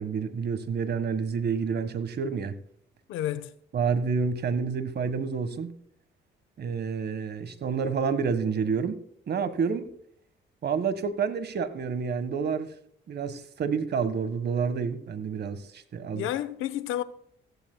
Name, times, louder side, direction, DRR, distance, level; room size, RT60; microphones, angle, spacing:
voice 1, 0.0-2.5 3.7-5.7 6.6-9.0 9.3-9.9 10.6-12.7 13.1-16.3, right 6 dB, 55° right, 1.6 m, -29 dB
voice 2, 3.1-3.5 16.1-17.0, left 12 dB, 90° left, 1.0 m, -31 dB
16.0 x 15.0 x 2.3 m
cardioid pair, 90°, 20 cm